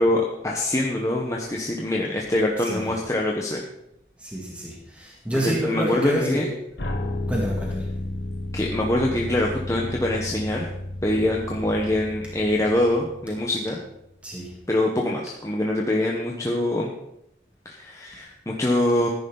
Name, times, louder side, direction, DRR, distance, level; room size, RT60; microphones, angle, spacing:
voice 1, 0.0-3.6 5.4-6.5 8.5-10.7 11.0-13.8 14.7-16.9 17.6-19.1, left 1 dB, 20° left, -1 dB, 1.1 m, -24 dB
voice 2, 4.2-6.5 7.3-7.9 14.2-14.5, equal, 5° right, -3 dB, 2.2 m, -28 dB
sound 1, 6.8-13.7, left 1 dB, 75° left, 1.3 m, -32 dB
14.5 x 10.5 x 4.0 m, 0.82 s
head